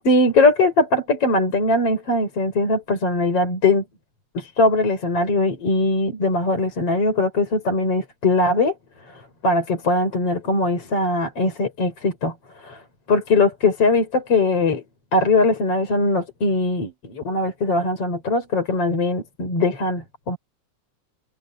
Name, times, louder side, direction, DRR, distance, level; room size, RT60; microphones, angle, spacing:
voice 1, 0.0-3.8 4.3-8.7 9.1-12.8 13.1-14.8 15.1-20.4, left 2 dB, 50° left, 6.0 m, -20 dB
omnidirectional pair, 3.5 m